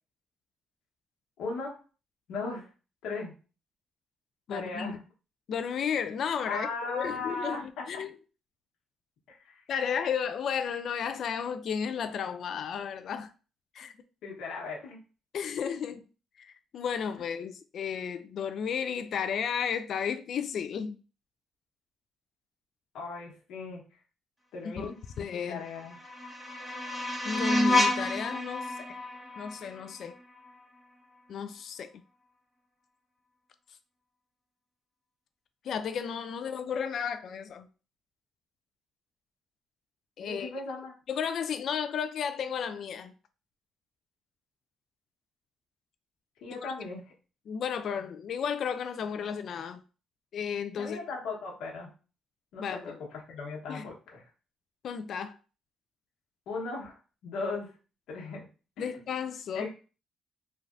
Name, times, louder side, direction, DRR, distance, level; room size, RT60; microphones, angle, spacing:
voice 1, 1.4-1.8 2.3-2.7 3.0-3.3 4.5-5.0 6.5-7.8 9.3-9.6 14.2-15.0 22.9-23.8 24.5-25.0 25.5-26.0 40.2-40.9 46.4-47.0 50.8-51.9 52.5-52.9 53.3-54.2 56.5-57.0 57.2-57.7 58.1-58.5 58.8-59.0 59.5-59.7, left 3 dB, 85° left, 1.1 m, -37 dB
voice 2, 4.5-5.0 5.5-8.1 9.7-13.3 13.7-13.9 15.3-16.0 16.4-21.0 24.6-25.6 27.2-28.9 29.4-30.2 31.3-31.9 35.6-37.7 40.2-40.5 41.1-43.1 46.6-46.7 47.5-49.8 50.3-51.0 52.6-53.0 53.7-53.9 54.8-55.3 58.8-59.7, left 7 dB, 65° left, 0.3 m, -33 dB
sound 1, 25.5-30.5, left 1 dB, 5° right, 1.1 m, -30 dB
3.2 x 2.4 x 2.5 m
cardioid pair, 90°, 0 cm